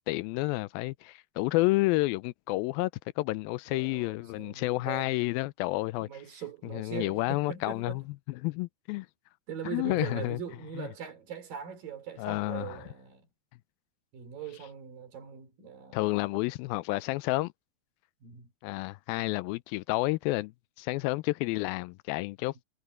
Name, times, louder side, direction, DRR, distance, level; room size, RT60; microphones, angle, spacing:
voice 1, 0.1-2.9 3.2-6.1 6.7-8.0 8.4-9.1 9.7-10.4 10.8-10.9 12.2-12.8 15.9-17.5 18.6-20.5 20.8-22.5, left 20 dB, 85° left, 2.4 m, -30 dB
voice 2, 3.7-5.2 6.0-8.0 9.5-13.3 14.1-16.0 18.2-18.5, right 7 dB, 70° right, 5.4 m, -41 dB
omnidirectional pair, 4.2 m